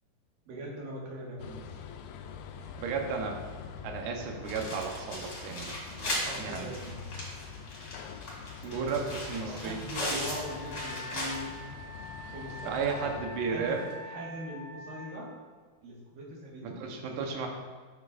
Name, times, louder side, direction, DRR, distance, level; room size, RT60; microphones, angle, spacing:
voice 1, 0.5-1.7 5.9-7.0 9.5-11.6 12.3-13.8 14.1-15.3 15.8-16.8, right 1 dB, 65° right, -4 dB, 3.2 m, -41 dB
sound 1, 1.4-13.9, left 7 dB, 80° left, 2.2 m, -45 dB
voice 2, 2.8-3.4 3.8-5.7 6.4-6.8 8.6-9.8 12.7-13.9 16.6-17.5, right 5 dB, 85° right, 2 dB, 3.0 m, -33 dB
sound 2, 4.4-11.7 12.0-12.1 12.5-12.6 13.8-13.9, left 1 dB, 30° left, 2.4 m, -38 dB
Wind instrument woodwind instrument, 10.3-15.2, left 2 dB, 55° left, 1.4 m, -44 dB
11.0 x 7.1 x 2.5 m, 1.4 s
omnidirectional pair, 4.5 m